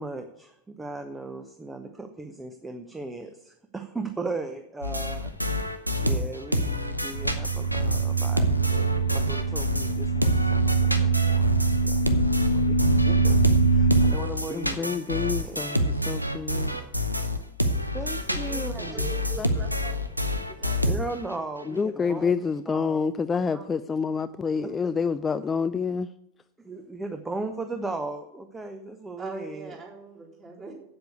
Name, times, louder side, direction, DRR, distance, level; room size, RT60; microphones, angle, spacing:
voice 1, 0.0-5.3 5.6-11.5 11.8-12.0 12.5-12.8 13.1-13.4 13.7-15.0 15.4-15.8 17.9-19.1 20.8-22.3 22.7-23.0 24.6-24.7 26.6-29.8, right 3 dB, 10° right, 6 dB, 0.8 m, -37 dB
sound 1, 4.8-10.0 10.2-21.4, left 1 dB, 90° right, 0.9 m, -27 dB
sound 2, 7.1-14.1, right 4 dB, 85° left, 1.2 m, -23 dB
voice 2, 14.5-16.8 19.4-19.5 21.7-26.1, left 5 dB, 20° left, 12 dB, 0.3 m, -28 dB
voice 3, 18.3-20.0 20.5-21.0 21.6-21.7 22.0-22.2 23.5-23.6 29.2-30.7, right 3 dB, 25° right, -4 dB, 3.9 m, -42 dB
8.4 x 7.9 x 8.1 m, 0.78 s
figure-of-eight pair, 90°, 0 cm